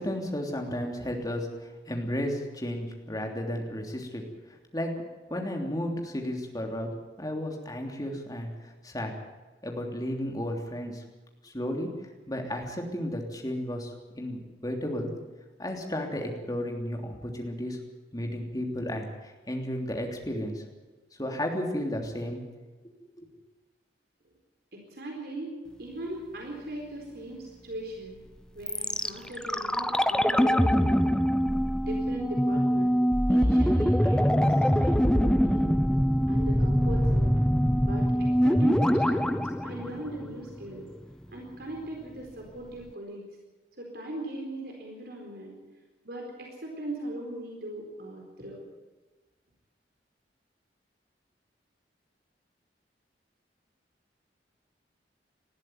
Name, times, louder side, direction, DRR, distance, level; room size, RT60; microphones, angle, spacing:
voice 1, 0.0-4.2 4.7-5.0 5.3-6.9 7.2-9.1 9.6-11.0 11.4-11.9 12.3-15.1 15.6-17.8 18.1-20.6 21.2-22.4 23.2-23.3, equal, 20° left, 2 dB, 3.2 m, -33 dB
voice 2, 24.7-28.3 28.5-31.2 31.8-33.0 33.3-35.8 36.3-37.4 37.8-40.9 41.3-43.2 43.8-45.6 46.0-48.6, right 1 dB, 60° right, 0 dB, 4.3 m, -39 dB
sound 1, 28.7-40.7 40.9-41.0, equal, 5° left, 0.6 m, -24 dB
20.0 x 13.5 x 9.6 m, 1.3 s
head